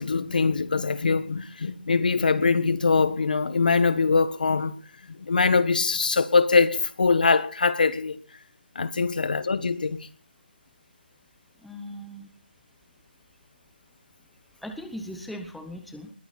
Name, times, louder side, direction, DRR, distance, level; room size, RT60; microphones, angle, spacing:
voice 1, 0.0-4.7 5.1-8.2 8.7-10.1, left 4 dB, 50° left, 1.5 m, -23 dB
voice 2, 11.6-12.3 14.6-16.1, equal, ahead, 0.9 m, -39 dB
21.0 x 16.5 x 4.3 m
figure-of-eight pair, 170°, 6 cm